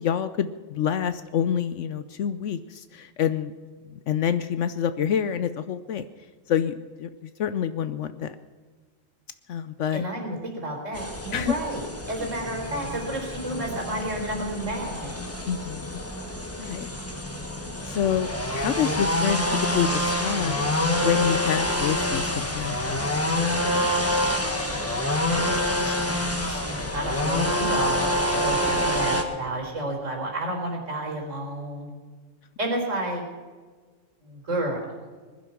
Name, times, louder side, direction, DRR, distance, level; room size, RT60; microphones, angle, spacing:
voice 1, 0.0-3.5 3.9-6.1 6.5-8.3 9.5-10.0 11.3-11.5 15.5-16.0 16.6-16.9 17.8-23.3 28.6-29.0, left 9 dB, 70° left, 12 dB, 1.0 m, -27 dB
voice 2, 9.9-11.8 12.1-15.2 25.3-26.1 26.4-31.9 32.6-33.2 34.2-34.8, right 1 dB, 75° right, 1 dB, 4.5 m, -31 dB
sound 1, 10.9-29.2, left 1 dB, 10° left, 1.5 m, -27 dB
20.5 x 11.5 x 6.0 m, 1.5 s
omnidirectional pair, 1.3 m